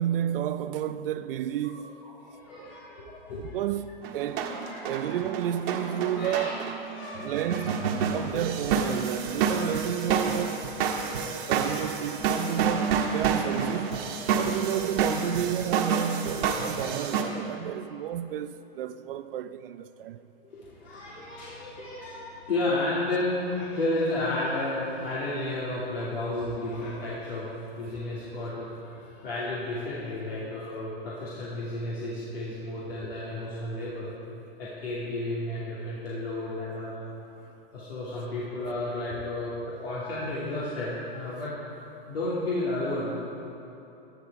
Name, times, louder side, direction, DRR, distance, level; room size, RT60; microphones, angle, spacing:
voice 1, 0.0-1.9 2.6-2.7 3.4-3.9 4.1-4.5 4.8-6.7 7.2-10.7 11.5-14.0 14.4-20.2, right 11 dB, 70° right, 0.5 m, -31 dB
voice 2, 2.2-3.6 4.3-5.2 5.7-6.5 6.9-7.8 8.2-8.4 8.7-8.8 20.4-34.1 34.6-36.9 37.2-37.3 37.7-41.5 42.1-43.1, left 2 dB, 80° left, 2.7 m, -32 dB
sound 1, 4.0-17.2, right 6 dB, 50° right, 1.5 m, -29 dB
12.0 x 11.0 x 4.7 m
hypercardioid pair, 120°, 29 cm